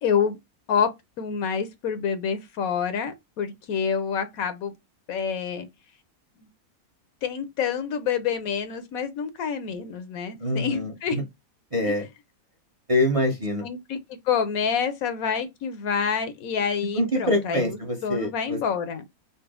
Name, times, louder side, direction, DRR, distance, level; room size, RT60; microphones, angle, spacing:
voice 1, 0.0-0.4 0.7-0.9 1.2-4.7 5.1-5.7 6.4-6.5 7.2-11.2 11.8-11.9 13.6-14.0 14.2-19.0, left 7 dB, 75° left, 1.1 m, -27 dB
voice 2, 10.4-11.2 11.7-12.1 12.9-13.7 16.9-18.6, left 1 dB, 30° right, 0.7 m, -25 dB
4.0 x 2.1 x 3.6 m
omnidirectional pair, 1.5 m